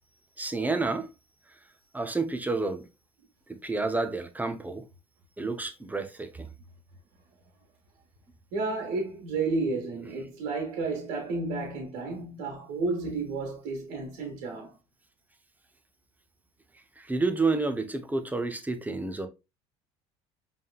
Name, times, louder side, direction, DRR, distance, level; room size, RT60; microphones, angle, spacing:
voice 1, 0.4-1.1 1.9-2.9 3.5-4.8 5.4-6.5 17.0-19.3, right 3 dB, 10° right, 0.8 m, -29 dB
voice 2, 8.5-14.7, right 3 dB, 75° right, 1.6 m, -32 dB
5.4 x 3.5 x 2.3 m
supercardioid pair, 80°, 14 cm